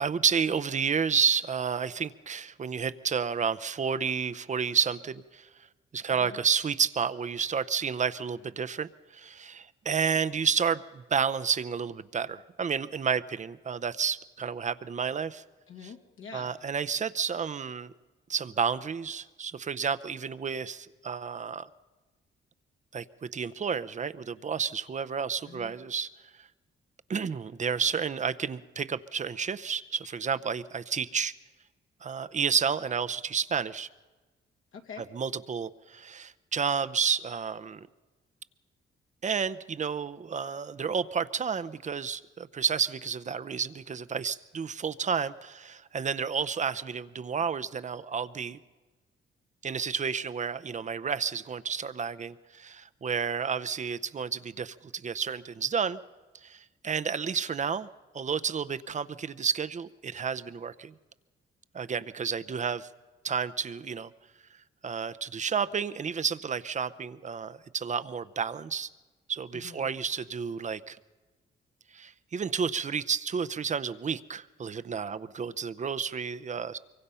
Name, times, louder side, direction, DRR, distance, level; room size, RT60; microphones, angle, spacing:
voice 1, 0.0-5.5 5.9-15.4 16.3-17.9 18.3-21.7 22.9-26.1 26.4-26.5 27.1-31.3 32.0-33.9 35.1-37.9 39.2-48.6 49.6-56.0 56.4-57.9 58.1-60.9 61.7-62.9 63.2-64.1 64.8-68.9 69.3-71.0 71.9-76.8, right 6 dB, 35° right, 14 dB, 0.7 m, -31 dB
voice 2, 6.1-6.4 15.7-16.5 25.4-25.7 34.7-35.1 69.5-69.9, left 6 dB, 75° left, 2 dB, 2.3 m, -46 dB
24.5 x 23.5 x 5.6 m, 1.3 s
cardioid pair, 115°, 21 cm